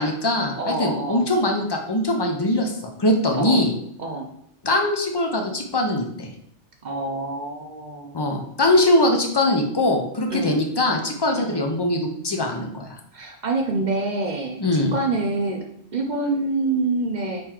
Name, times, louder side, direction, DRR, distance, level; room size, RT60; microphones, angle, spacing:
voice 1, 0.0-2.7 3.0-3.7 4.6-6.3 8.1-13.0 14.6-14.9, left 1 dB, 40° left, 2 dB, 0.3 m, -22 dB
voice 2, 0.6-1.3 3.3-3.6 4.0-4.3 6.8-8.2 10.3-10.6 11.4-11.6 13.1-14.6 14.9-15.6 15.9-17.4, right 2 dB, 50° right, 2 dB, 0.6 m, -26 dB
3.8 x 3.2 x 4.3 m, 0.70 s
omnidirectional pair, 1.2 m